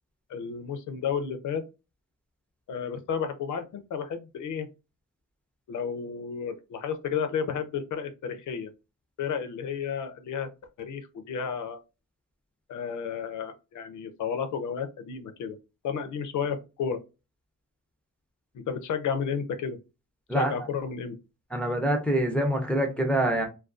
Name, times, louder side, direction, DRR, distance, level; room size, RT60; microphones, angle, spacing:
voice 1, 0.3-1.6 2.7-4.7 5.7-8.7 9.2-10.5 10.8-11.8 12.7-15.6 15.8-17.0 18.5-19.8 20.3-21.2, left 6 dB, 70° left, 0.5 m, -32 dB
voice 2, 21.5-23.4, right 1 dB, 5° left, 0.4 m, -25 dB
2.3 x 2.2 x 2.4 m
wide cardioid pair, 135°, 31 cm